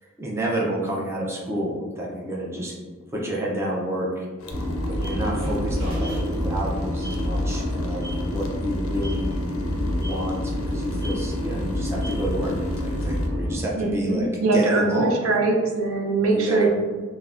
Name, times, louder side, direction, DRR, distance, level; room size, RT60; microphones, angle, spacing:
voice 1, 0.0-2.7 3.1-4.3 4.9-9.4 9.9-15.2 16.3-16.7, right 1 dB, 15° right, -4 dB, 0.4 m, -29 dB
sound 1, 4.4-13.3, left 1 dB, 70° left, 0.4 m, -42 dB
sound 2, 4.5-13.6, left 1 dB, 50° right, 1.2 m, -27 dB
voice 2, 13.8-16.7, right 3 dB, 80° right, 1 dB, 0.5 m, -22 dB
3.3 x 2.1 x 2.4 m, 1.5 s
head